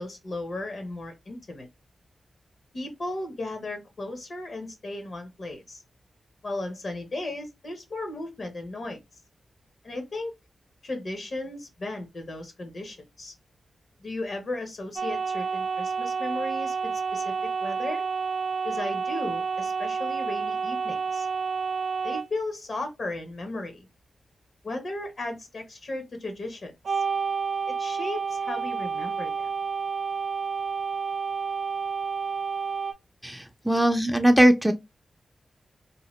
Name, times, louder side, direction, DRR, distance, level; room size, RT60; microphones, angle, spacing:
voice 1, 0.0-1.7 2.7-5.8 6.4-9.0 9.8-10.3 10.8-13.3 14.0-18.0 18.6-21.3 22.0-23.9 24.6-27.0 27.7-29.5, left 2 dB, 65° left, 1.0 m, -35 dB
sound 1, 15.0-22.3 26.8-32.9, right 5 dB, 70° right, 0.4 m, -29 dB
voice 2, 33.2-34.7, right 1 dB, 5° right, 0.5 m, -20 dB
2.9 x 2.2 x 3.1 m
supercardioid pair, 40°, 0 cm